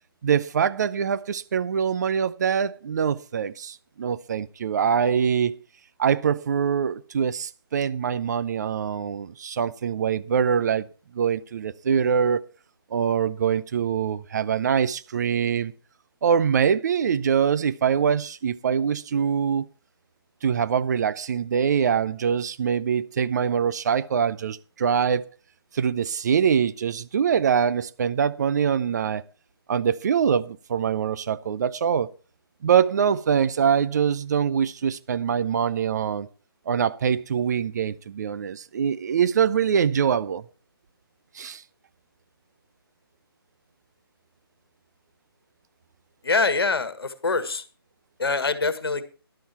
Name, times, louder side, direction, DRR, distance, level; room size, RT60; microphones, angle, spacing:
voice 1, 0.2-5.6 6.0-10.9 11.1-12.4 12.9-15.7 16.2-19.7 20.4-25.3 25.7-29.2 29.7-32.1 32.6-36.3 36.7-40.4 41.3-41.6, right 7 dB, 45° right, 0.6 m, -24 dB
voice 2, 46.2-47.6 48.2-49.0, left 4 dB, 70° left, 1.8 m, -24 dB
12.5 x 11.5 x 4.4 m
figure-of-eight pair, 145°, 13 cm